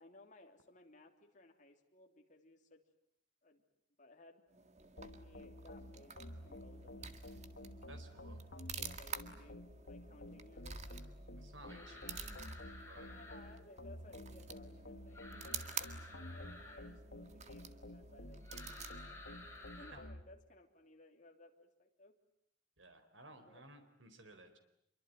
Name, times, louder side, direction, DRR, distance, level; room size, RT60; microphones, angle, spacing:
voice 1, 0.0-2.8 3.4-3.6 4.0-4.4 5.2-7.2 8.8-11.0 11.6-12.3 13.1-19.2 19.8-22.2 23.3-23.7, left 2 dB, 40° left, 3 dB, 3.2 m, -61 dB
sound 1, 4.5-20.1, right 7 dB, 35° right, 1.9 m, -50 dB
sound 2, 5.0-20.2, left 1 dB, 65° left, 1.8 m, -51 dB
voice 2, 7.9-8.4 11.4-12.4 12.9-13.1 19.9-20.0 22.8-24.6, right 2 dB, 80° right, 8 dB, 4.2 m, -57 dB
sound 3, 11.6-13.4 15.1-16.8 18.4-19.9, left 2 dB, 15° left, 6.4 m, -54 dB
26.5 x 24.0 x 9.4 m, 0.76 s
head